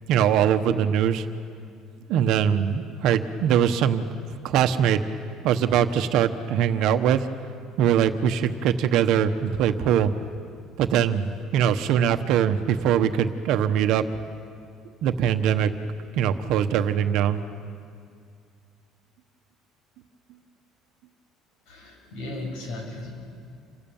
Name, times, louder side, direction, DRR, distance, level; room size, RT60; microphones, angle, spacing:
voice 1, 0.1-1.2 2.1-4.1 4.4-5.0 5.4-7.2 7.8-10.1 10.8-14.0 15.0-15.7 16.2-17.4, right 9 dB, 55° right, 8 dB, 1.1 m, -22 dB
voice 2, 21.7-23.1, left 2 dB, 75° left, 2 dB, 7.1 m, -36 dB
27.5 x 24.5 x 7.2 m, 2.3 s
cardioid pair, 175°, 0 cm